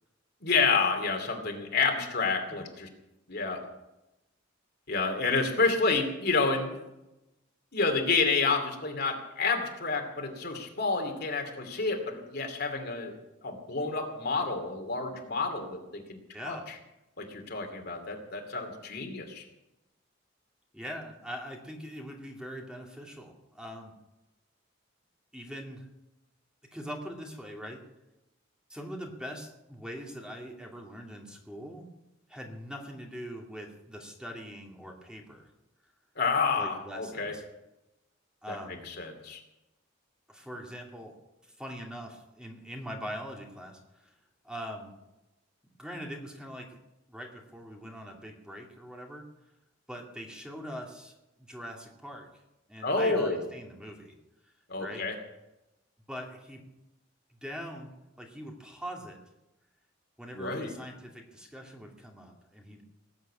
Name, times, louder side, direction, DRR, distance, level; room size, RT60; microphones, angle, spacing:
voice 1, 0.4-2.9 3.3-3.6 4.9-6.8 7.7-13.2 13.4-16.2 16.4-16.6 17.2-19.4 36.2-37.3 38.5-38.6 38.9-39.4 52.8-53.4 54.7-55.2 60.3-60.7, left 4 dB, 55° left, 4 dB, 2.8 m, -29 dB
voice 2, 16.3-16.7 20.7-23.9 25.3-25.9 26.7-27.8 28.7-31.9 32.3-35.5 36.6-37.4 38.4-38.9 40.3-41.2 41.6-44.1 44.4-44.9 45.8-46.8 47.1-49.2 49.9-52.3 52.7-54.1 54.8-55.0 56.1-56.6 57.4-57.9 58.2-59.2 60.2-62.8, equal, 5° right, 0 dB, 2.3 m, -42 dB
19.0 x 8.1 x 8.6 m, 0.94 s
head